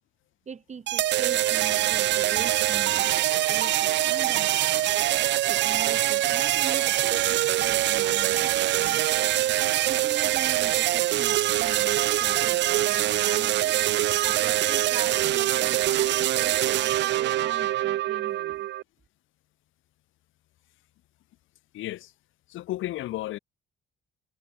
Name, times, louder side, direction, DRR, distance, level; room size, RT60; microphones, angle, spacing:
voice 1, 0.5-4.9 5.5-9.0 9.9-13.7 14.2-18.7, right 6 dB, 35° right, 1.1 m, -41 dB
sound 1, 0.9-18.8, right 14 dB, 65° right, 0.4 m, -24 dB
voice 2, 21.7-22.1 22.5-23.4, left 15 dB, 85° left, 1.1 m, -33 dB
cardioid pair, 90°, 20 cm